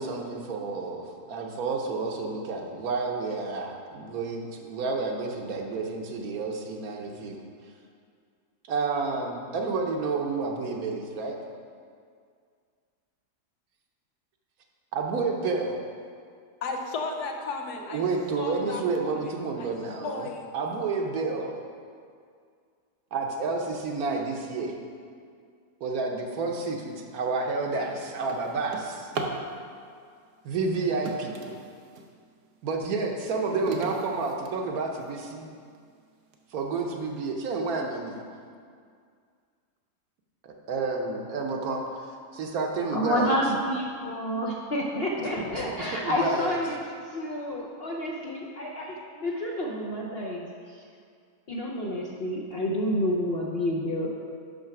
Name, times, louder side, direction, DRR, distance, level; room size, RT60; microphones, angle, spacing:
voice 1, 0.0-7.4 8.7-11.4 14.9-15.7 17.9-20.3 20.5-21.5 23.1-24.8 25.8-29.1 30.4-31.4 32.6-35.4 36.5-38.2 40.4-43.4 45.5-46.6, right 4 dB, 65° right, 2 dB, 1.2 m, -30 dB
voice 2, 16.6-18.0 18.4-19.3 19.6-19.7 20.0-20.5, left 3 dB, 75° left, 3 dB, 1.3 m, -34 dB
Drawer open or close, 26.8-27.0 27.5-29.5 30.5-32.1 32.7-35.1 35.7-35.8 36.3-36.4 36.8-37.2, right 3 dB, 85° right, 1.3 m, -38 dB
voice 3, 42.9-46.7 47.0-50.8 51.5-54.2, equal, 55° left, -2 dB, 0.7 m, -29 dB
6.5 x 5.8 x 5.8 m, 2.2 s
omnidirectional pair, 1.7 m